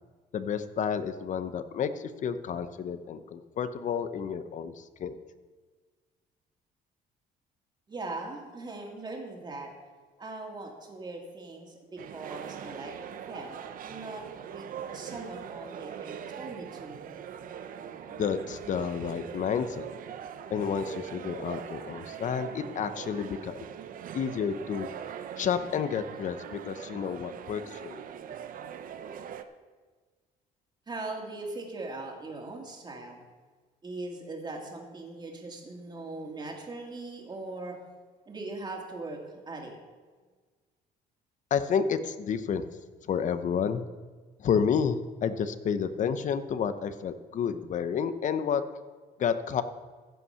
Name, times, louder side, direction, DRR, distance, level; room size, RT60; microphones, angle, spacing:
voice 1, 0.3-5.2 18.1-19.9 20.5-23.6 24.1-24.9 25.4-28.0 41.5-42.7 43.1-43.8 44.4-48.6 49.2-49.6, left 7 dB, 50° left, 12 dB, 0.8 m, -30 dB
voice 2, 7.9-9.7 10.2-12.9 13.3-17.0 30.9-33.2 33.8-37.8 38.3-39.8, right 2 dB, 25° right, 0 dB, 2.3 m, -40 dB
sound 1, 12.0-29.4, right 8 dB, 55° right, 0.7 m, -42 dB
15.0 x 5.7 x 5.7 m, 1.4 s
cardioid pair, 110°, 17 cm